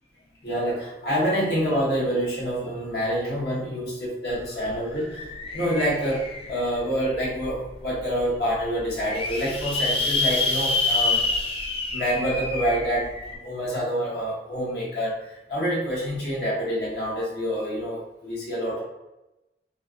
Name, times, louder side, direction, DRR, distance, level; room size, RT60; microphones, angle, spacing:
voice 1, 0.4-5.3 5.5-11.2 11.9-18.8, equal, 65° left, -7 dB, 1.0 m, -27 dB
sound 1, 4.3-4.4 4.7-6.8 7.4-7.5 7.9-8.2 8.8-13.4, left 3 dB, 30° left, 0.3 m, -27 dB
2.7 x 2.4 x 2.3 m, 0.96 s
head